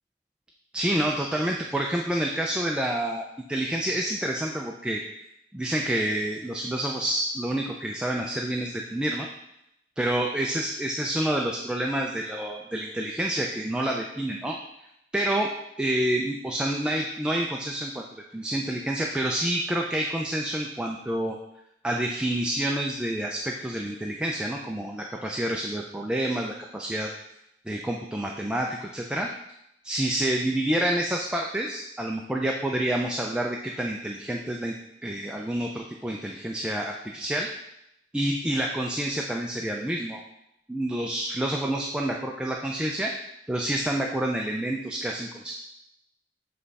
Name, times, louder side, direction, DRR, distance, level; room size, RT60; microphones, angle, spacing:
voice 1, 0.7-5.0 5.5-9.3 10.0-14.6 15.1-15.5 15.8-21.4 21.8-27.1 27.7-29.3 29.8-34.7 35.0-37.5 38.1-40.2 40.7-43.1 43.5-45.5, right 1 dB, 5° right, 0 dB, 0.4 m, -28 dB
7.4 x 3.3 x 4.1 m, 0.80 s
head